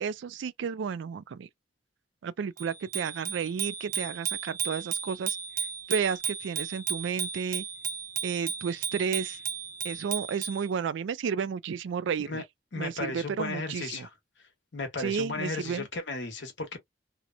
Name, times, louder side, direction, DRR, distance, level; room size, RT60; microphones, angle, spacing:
voice 1, 0.0-1.5 2.2-5.4 5.9-7.6 8.2-9.4 9.8-12.4 12.8-14.1 15.0-15.9, right 6 dB, 80° right, 0.3 m, -32 dB
Bicycle bell, 2.6-10.7, right 6 dB, 55° right, 0.7 m, -34 dB
voice 2, 12.7-14.1 14.7-16.8, left 3 dB, 75° left, 1.0 m, -35 dB
2.8 x 2.0 x 2.4 m
head